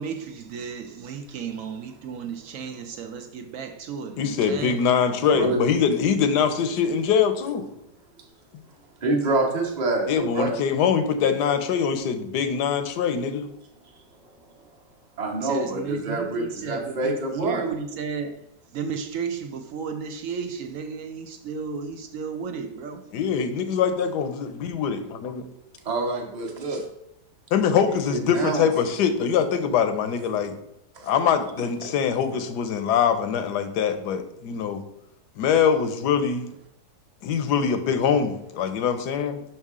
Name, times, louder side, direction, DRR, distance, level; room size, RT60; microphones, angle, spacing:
voice 1, 0.0-4.8 15.4-18.4 18.7-23.1, right 6 dB, 70° right, 0.8 m, -33 dB
voice 2, 4.2-7.7 10.1-13.5 23.1-25.5 27.5-30.6 31.0-34.8 35.4-36.5 37.2-39.4, left 7 dB, 80° left, 1.3 m, -23 dB
voice 3, 9.0-10.5 15.2-17.6 25.8-26.8 28.1-28.6 30.9-31.1, right 2 dB, 30° right, 1.1 m, -26 dB
6.1 x 5.6 x 3.6 m
omnidirectional pair, 1.8 m